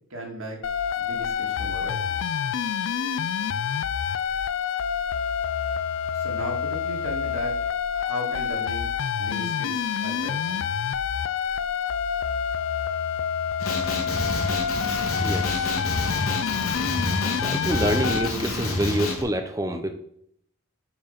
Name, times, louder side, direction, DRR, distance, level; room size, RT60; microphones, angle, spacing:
voice 1, 0.1-0.6 1.0-2.2 6.1-7.6 7.9-10.6, equal, 75° right, 0 dB, 2.2 m, -37 dB
sound 1, 0.6-18.3, left 7 dB, 60° left, 0.3 m, -27 dB
Male speech man speaking, 13.6-19.2, left 2 dB, 80° left, 1.8 m, -28 dB
voice 2, 15.2-15.8 17.3-19.9, right 1 dB, 15° right, 6 dB, 0.6 m, -27 dB
7.2 x 4.8 x 5.8 m, 0.69 s
head